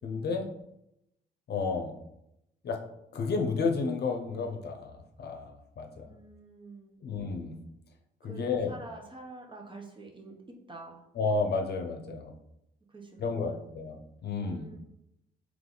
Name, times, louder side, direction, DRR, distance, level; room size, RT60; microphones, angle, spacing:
voice 1, 0.0-0.5 1.5-1.9 2.6-2.8 3.1-4.9 5.2-6.1 7.0-7.6 8.2-8.7 11.2-12.3 13.2-14.8, left 4 dB, 55° left, 4 dB, 0.7 m, -31 dB
voice 2, 6.0-7.1 8.2-11.1 12.9-13.8 14.4-14.8, right 3 dB, 25° right, 2 dB, 0.8 m, -48 dB
3.4 x 3.1 x 3.9 m, 0.81 s
cardioid pair, 90°, 20 cm